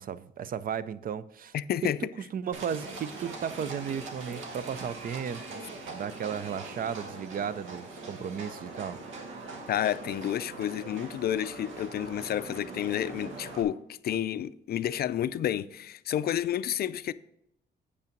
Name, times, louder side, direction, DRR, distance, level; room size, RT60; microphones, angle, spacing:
voice 1, 0.0-1.5 1.8-9.0, right 8 dB, 45° right, 0.5 m, -35 dB
voice 2, 1.5-2.0 9.7-17.1, left 11 dB, 50° left, 0.4 m, -30 dB
Livestock farm animals working animals, 2.5-13.6, right 3 dB, 80° right, 1.2 m, -42 dB
8.2 x 5.5 x 5.2 m
cardioid pair, 90°, 20 cm